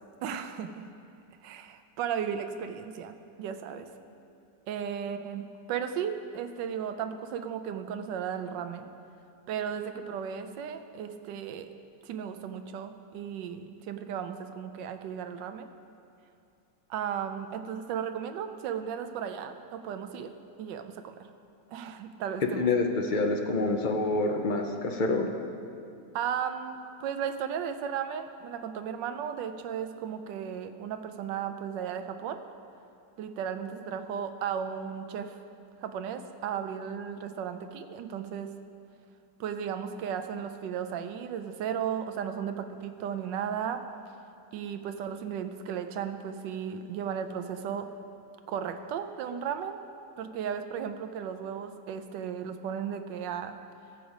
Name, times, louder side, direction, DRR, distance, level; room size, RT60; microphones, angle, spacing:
voice 1, 0.2-0.8 1.4-3.9 4.7-8.9 9.5-11.7 12.0-15.7 16.9-20.3 20.6-21.1 21.7-22.7 26.1-32.4 33.2-35.4 35.8-38.5 39.4-43.8 44.5-47.9 48.5-49.8 50.2-53.5, right 8 dB, 90° right, 8 dB, 1.3 m, -35 dB
voice 2, 22.6-25.3, left 3 dB, 65° left, 3 dB, 0.4 m, -27 dB
16.0 x 7.1 x 4.9 m, 2.5 s
omnidirectional pair, 1.9 m